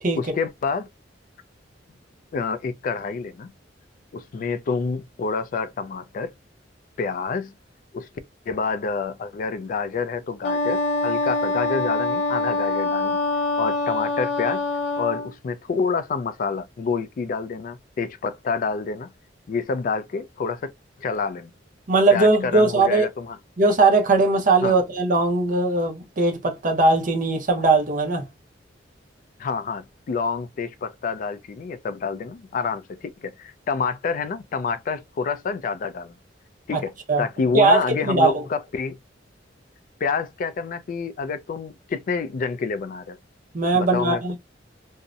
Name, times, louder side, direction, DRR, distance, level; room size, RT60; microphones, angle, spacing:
voice 1, 0.1-0.9 2.3-3.5 4.1-6.3 7.0-7.5 7.9-8.1 8.5-13.2 13.6-14.6 15.0-19.1 19.5-20.7 21.0-21.5 22.1-23.4 24.6-24.8 29.4-36.1 36.7-39.0 40.0-43.2 43.7-44.2, left 5 dB, 45° left, 0.3 m, -28 dB
Wind instrument woodwind instrument, 10.4-15.3, left 3 dB, 75° left, 0.7 m, -24 dB
voice 2, 21.9-23.1 23.6-28.2 36.7-36.8 37.1-37.2 37.5-38.4 43.5-44.4, right 3 dB, 45° right, 0.6 m, -19 dB
2.6 x 2.0 x 2.3 m
head